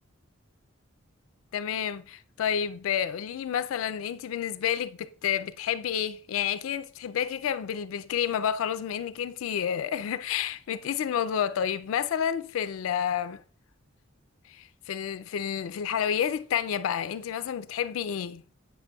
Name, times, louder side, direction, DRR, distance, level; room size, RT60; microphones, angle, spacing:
voice 1, 1.5-13.4 14.5-18.4, left 8 dB, 90° left, 0.3 m, -30 dB
7.8 x 6.6 x 2.3 m
head